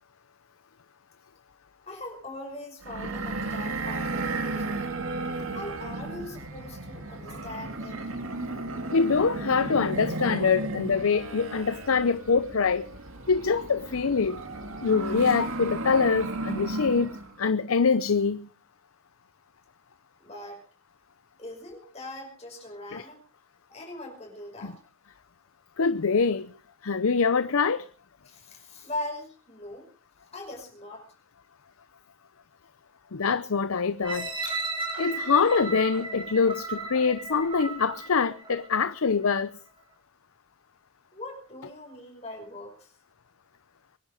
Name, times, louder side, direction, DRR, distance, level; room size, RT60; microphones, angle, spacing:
voice 1, 1.9-4.8 5.5-8.2 20.2-20.6 21.4-23.2 23.7-24.8 28.3-29.9 30.3-31.1 41.1-42.9, left 1 dB, 30° left, 5.6 m, -40 dB
sound 1, 2.8-17.3, right 2 dB, 80° right, 2.2 m, -34 dB
voice 2, 8.9-12.9 13.3-14.4 14.8-17.1 17.4-18.5 22.9-23.0 25.8-26.5 26.8-27.9 33.1-34.3 35.0-39.5, left 5 dB, 80° left, 0.7 m, -24 dB
sound 2, 34.0-39.0 39.5-39.6, right 3 dB, 25° right, 4.6 m, -35 dB
23.5 x 10.5 x 5.0 m
head